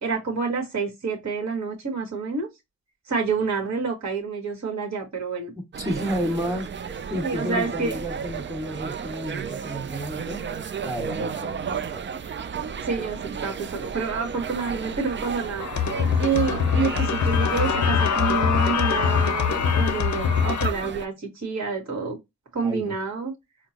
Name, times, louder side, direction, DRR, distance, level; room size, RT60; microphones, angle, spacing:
voice 1, 0.0-2.5 3.1-5.5 7.2-8.0 12.8-15.7 16.2-22.2 22.5-23.3, right 5 dB, 50° right, 1.4 m, -28 dB
sound 1, 5.7-21.1, right 6 dB, 35° right, 0.4 m, -33 dB
voice 2, 5.8-12.1 22.6-22.9, equal, 10° right, 1.7 m, -32 dB
sound 2, 15.6-20.7, left 7 dB, 55° left, 0.6 m, -23 dB
4.3 x 2.1 x 2.8 m
cardioid pair, 55°, 35 cm